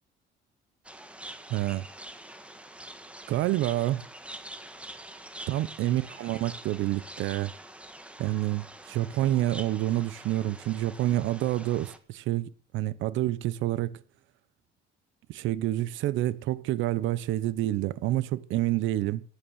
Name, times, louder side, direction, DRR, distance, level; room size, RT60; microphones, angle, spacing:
sound 1, 0.8-12.0, right 1 dB, 5° right, 1.7 m, -45 dB
voice 1, 1.5-1.8 3.3-4.0 5.5-7.5 8.2-14.0 15.3-19.2, right 15 dB, 80° right, 1.0 m, -28 dB
14.5 x 10.0 x 6.5 m
cardioid pair, 130°, 20 cm